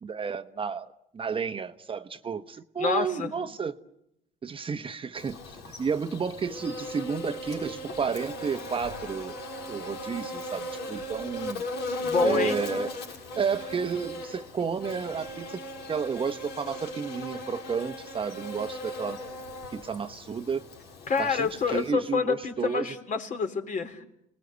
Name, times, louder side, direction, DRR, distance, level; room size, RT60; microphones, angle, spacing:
voice 1, 0.0-3.7 4.4-5.4 5.8-9.4 9.7-11.6 12.2-13.0 13.4-19.2 19.7-20.6 21.2-22.9, right 6 dB, 30° right, 9 dB, 1.1 m, -32 dB
voice 2, 2.8-3.3 12.0-12.6 21.1-24.0, left 5 dB, 50° left, 6 dB, 3.8 m, -27 dB
Buzz, 5.2-21.9, left 1 dB, 80° left, 6.3 m, -37 dB
30.0 x 20.0 x 8.1 m, 0.82 s
cardioid pair, 110°, 17 cm